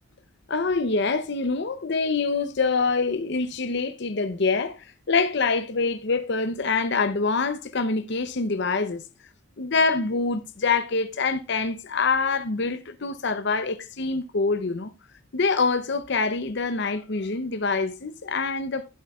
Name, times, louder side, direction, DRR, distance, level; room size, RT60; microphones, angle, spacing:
voice 1, 0.5-9.0 9.6-14.9 15.3-18.9, left 4 dB, 55° left, 0.7 m, -25 dB
12.5 x 7.8 x 2.4 m
head